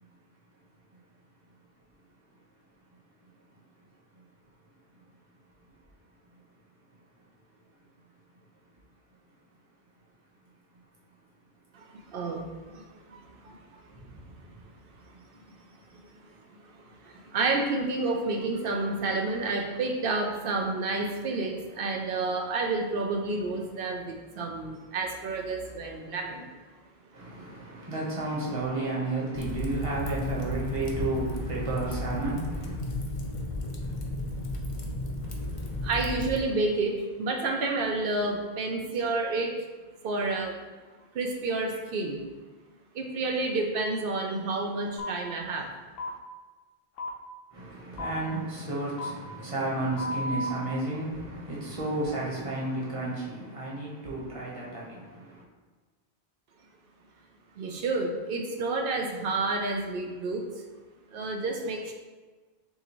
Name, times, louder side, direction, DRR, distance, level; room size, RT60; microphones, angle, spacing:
voice 1, 11.7-12.8 13.1-13.6 13.9-14.0 15.3-15.4 16.8-26.5 35.8-39.5 40.0-40.6 41.1-42.3 42.9-45.7 57.6-60.4 61.1-61.9, right 3 dB, 65° right, 2 dB, 0.7 m, -30 dB
voice 2, 14.0-14.3 27.1-32.8 47.5-55.4, right 2 dB, 35° right, -5 dB, 1.1 m, -32 dB
Fire, 29.3-36.4, left 2 dB, 40° left, 0.5 m, -34 dB
sound 1, 45.0-45.1 46.0-46.1 47.0-47.1 48.0-48.1 49.0-49.1 50.0-50.5, left 1 dB, 70° left, 0.8 m, -33 dB
6.5 x 2.5 x 2.9 m, 1.3 s
omnidirectional pair, 1.1 m